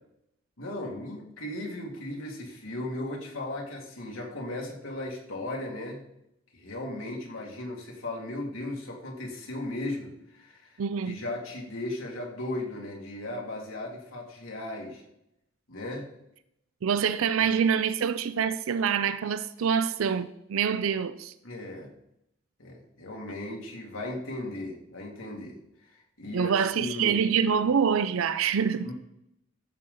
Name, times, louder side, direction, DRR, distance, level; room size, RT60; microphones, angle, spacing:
voice 1, 0.6-6.0 6.5-10.8 11.1-15.0 15.7-16.1 17.3-17.5 21.4-21.9 22.6-25.6 25.9-27.2 28.8-28.9, left 1 dB, 75° left, 2.1 m, -36 dB
voice 2, 10.8-11.2 16.8-21.3 26.3-28.9, right 7 dB, 80° right, 0.4 m, -26 dB
14.5 x 6.5 x 3.8 m
head